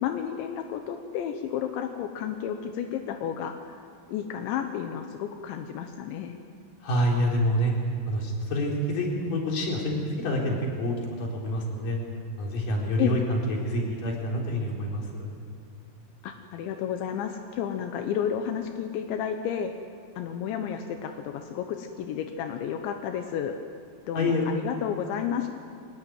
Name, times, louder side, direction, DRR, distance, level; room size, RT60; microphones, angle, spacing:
voice 1, 0.0-3.8 4.1-6.4 13.0-13.2 16.2-19.7 20.2-23.6 24.1-25.5, left 9 dB, 85° left, 5 dB, 3.4 m, -31 dB
voice 2, 6.8-7.7 8.1-12.0 12.4-15.4 24.1-24.4, equal, 50° left, -1 dB, 5.2 m, -27 dB
23.5 x 20.0 x 9.3 m, 2.4 s
omnidirectional pair, 5.2 m